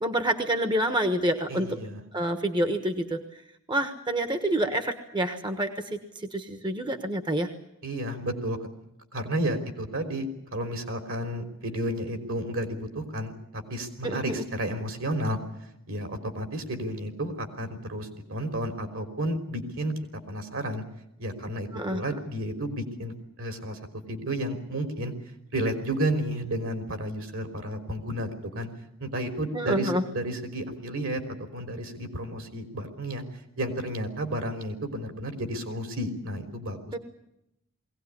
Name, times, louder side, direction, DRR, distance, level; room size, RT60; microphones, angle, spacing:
voice 1, 0.0-1.8 2.1-3.2 3.7-7.5 14.0-14.4 21.7-22.2 29.5-30.0 36.9-37.0, right 1 dB, 20° right, 7 dB, 1.2 m, -28 dB
voice 2, 1.5-2.0 7.8-8.6 9.1-15.4 15.9-19.9 20.3-20.8 21.2-23.8 24.1-25.1 25.5-28.7 29.0-33.2 33.6-36.9, right 1 dB, 65° right, 6 dB, 3.5 m, -32 dB
21.5 x 17.5 x 9.8 m, 0.82 s
head